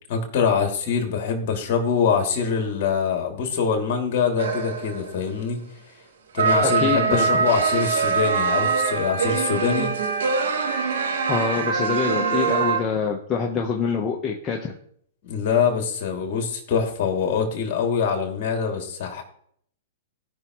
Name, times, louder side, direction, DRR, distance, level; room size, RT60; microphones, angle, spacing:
voice 1, 0.1-5.6 6.3-9.9 15.2-19.2, left 6 dB, 50° left, 3 dB, 2.7 m, -24 dB
sound 1, 4.4-5.2 6.4-12.8, right 5 dB, 75° right, 1.4 m, -23 dB
voice 2, 6.4-7.4 11.3-14.7, left 6 dB, 25° left, 0 dB, 1.0 m, -25 dB
17.5 x 5.9 x 3.1 m, 0.66 s
hypercardioid pair, 120°, 0 cm